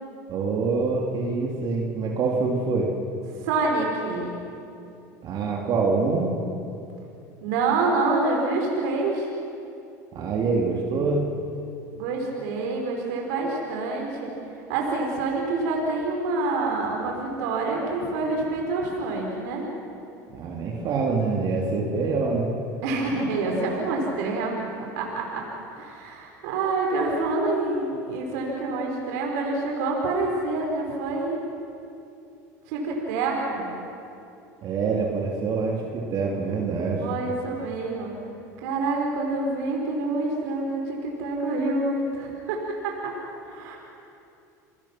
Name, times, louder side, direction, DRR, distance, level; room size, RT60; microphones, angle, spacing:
voice 1, 0.3-2.9 5.2-6.3 10.1-11.2 20.3-22.5 34.6-37.1, right 4 dB, 50° right, -1 dB, 3.2 m, -25 dB
voice 2, 3.4-4.3 7.4-9.3 12.0-14.3 14.7-19.6 22.8-24.6 25.0-25.5 25.7-31.4 32.7-33.7 37.0-38.1 38.6-43.1 43.5-43.8, right 3 dB, 75° right, 0 dB, 4.3 m, -27 dB
28.5 x 19.5 x 6.0 m, 2.7 s
hypercardioid pair, 90°, 9 cm